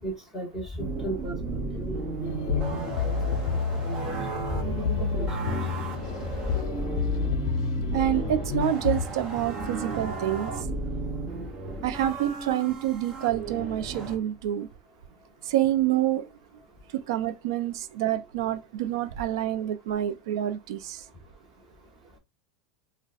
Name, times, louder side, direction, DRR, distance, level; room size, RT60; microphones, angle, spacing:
voice 1, 0.0-5.8 9.3-9.4, right 1 dB, 5° right, 1.1 m, -37 dB
sound 1, 0.8-14.2, right 3 dB, 30° right, 0.7 m, -34 dB
sound 2, 2.2-9.1, left 6 dB, 80° left, 0.4 m, -30 dB
voice 2, 7.9-10.7 11.8-14.7 15.4-16.4 16.9-21.1, right 12 dB, 80° right, 0.4 m, -27 dB
4.0 x 2.1 x 2.4 m
supercardioid pair, 165°, 2 cm